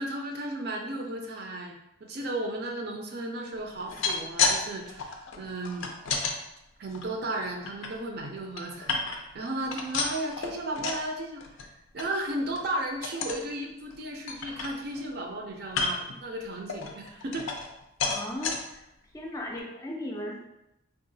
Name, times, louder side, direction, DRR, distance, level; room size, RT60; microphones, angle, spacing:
voice 1, 0.0-1.7 2.0-5.9 6.8-8.9 9.2-11.4 11.9-17.5, right 1 dB, 50° right, 1 dB, 0.4 m, -34 dB
sound 1, 3.7-4.6 4.9-6.3 6.9-7.9 8.3-9.4 9.7-11.1 11.4-11.7 12.0-12.1 12.5-12.7 13.0-13.4 13.9-14.0 14.3-15.1 15.7-16.1 16.7-17.7 18.0-18.6 19.2-19.3 19.6-19.7, left 4 dB, 80° left, 0.4 m, -31 dB
voice 2, 18.0-18.6 19.1-20.4, left 1 dB, 15° left, -2 dB, 0.4 m, -36 dB
3.7 x 2.3 x 2.6 m, 0.86 s
head